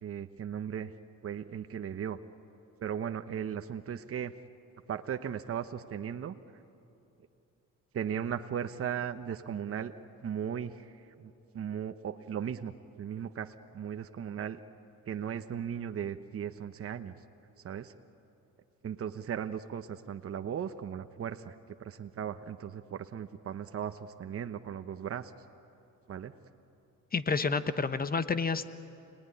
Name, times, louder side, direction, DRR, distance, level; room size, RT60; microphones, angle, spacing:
voice 1, 0.0-0.9 1.2-2.2 2.8-4.3 4.9-6.3 7.9-9.9 10.2-14.6 15.1-17.1 17.6-17.9 18.8-21.5 21.8-25.3 26.1-26.3, right 8 dB, 50° right, 8 dB, 1.0 m, -37 dB
voice 2, 27.1-28.7, left 4 dB, 30° left, 12 dB, 1.0 m, -29 dB
29.0 x 19.0 x 10.0 m, 2.7 s
cardioid pair, 90°, 30 cm